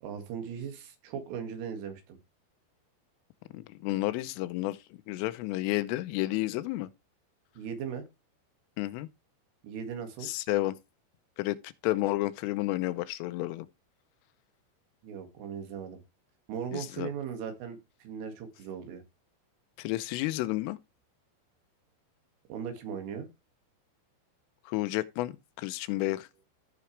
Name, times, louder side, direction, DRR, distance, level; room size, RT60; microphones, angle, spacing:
voice 1, 0.0-2.2 7.6-8.1 9.6-10.3 15.0-16.0 16.5-19.0 22.5-23.3, right 7 dB, 80° right, 4.6 m, -38 dB
voice 2, 3.5-4.8 5.1-6.9 8.8-9.1 10.2-10.8 11.4-13.7 16.7-17.1 19.8-20.8 24.7-26.3, left 18 dB, 90° left, 3.3 m, -31 dB
16.5 x 6.0 x 3.3 m
omnidirectional pair, 5.6 m